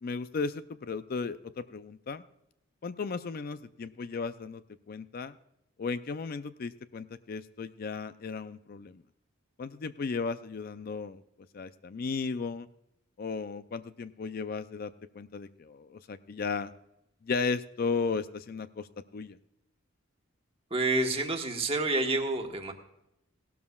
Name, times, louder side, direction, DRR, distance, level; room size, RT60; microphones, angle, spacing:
voice 1, 0.0-2.2 2.8-5.3 5.8-9.0 9.6-11.2 11.5-12.7 13.2-16.7 17.2-18.9 19.1-19.4, left 4 dB, 45° left, 12 dB, 0.4 m, -35 dB
voice 2, 20.7-22.7, right 2 dB, 25° right, 3 dB, 1.4 m, -28 dB
17.0 x 12.5 x 2.3 m, 0.82 s
head